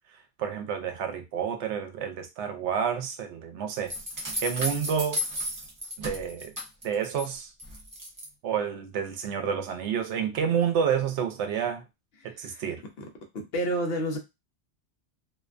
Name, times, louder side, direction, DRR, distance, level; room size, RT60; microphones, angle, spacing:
voice 1, 0.4-3.9 4.4-5.2 6.0-6.5 6.8-7.5 8.4-11.8 12.2-12.8, right 7 dB, 80° right, 0.9 m, -29 dB
sound 1, 3.9-7.3 7.6-8.3, left 1 dB, 25° right, 0.4 m, -34 dB
voice 2, 13.3-14.2, right 1 dB, 65° left, 0.9 m, -28 dB
2.6 x 2.2 x 2.4 m
omnidirectional pair, 1.2 m